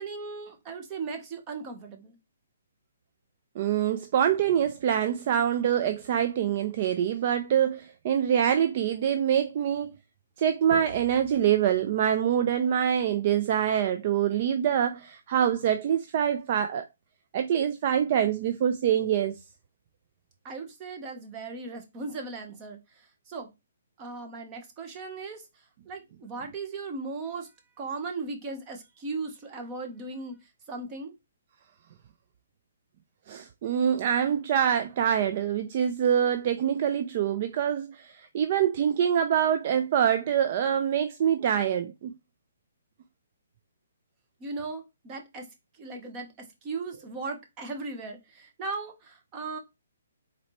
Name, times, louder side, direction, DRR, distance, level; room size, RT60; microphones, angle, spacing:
voice 1, 0.0-2.2 20.4-23.5 24.0-25.4 25.9-27.5 27.8-31.1 44.4-45.5 45.7-49.6, right 3 dB, 25° right, 1.2 m, -37 dB
voice 2, 3.6-9.9 10.4-16.8 17.3-19.4 33.3-42.1, right 9 dB, 40° right, 0.5 m, -25 dB
4.2 x 4.0 x 3.1 m
hypercardioid pair, 155°, 0 cm